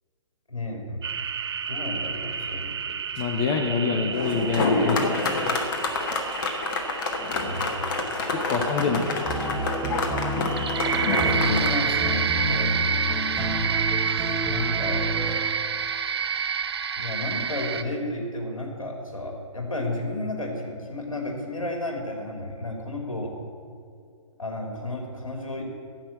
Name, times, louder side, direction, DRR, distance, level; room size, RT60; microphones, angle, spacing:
voice 1, 0.5-1.1 1.7-2.9 7.4-8.6 10.9-12.7 14.5-15.0 17.0-23.3 24.4-25.7, left 2 dB, 70° left, 2 dB, 2.8 m, -33 dB
sound 1, 1.0-17.8, right 7 dB, 50° right, 0.6 m, -30 dB
voice 2, 3.2-5.6 8.3-9.3 11.5-11.6, left 5 dB, 20° left, 5 dB, 0.6 m, -26 dB
sound 2, 4.1-11.7, left 3 dB, 35° left, 1.4 m, -27 dB
sound 3, 9.3-15.5, equal, 10° right, 1.3 m, -29 dB
10.5 x 7.5 x 8.6 m, 2.3 s
figure-of-eight pair, 130°, 17 cm